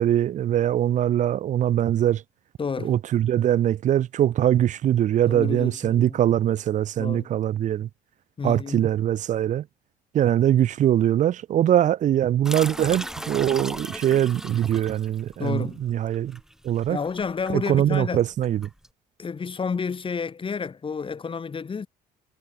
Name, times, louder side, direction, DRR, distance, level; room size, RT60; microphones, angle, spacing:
voice 1, 0.0-2.2 2.8-7.9 8.4-9.6 10.1-16.4 16.6-17.0 17.5-18.7, right 11 dB, 45° right, 0.5 m, -22 dB
voice 2, 2.6-3.0 5.3-6.2 7.0-7.3 8.4-8.9 15.4-15.8 16.9-18.2 19.2-21.9, left 5 dB, 30° left, 4.7 m, -30 dB
sound 1, 12.4-18.9, equal, 5° right, 6.7 m, -37 dB
cardioid pair, 110°, 17 cm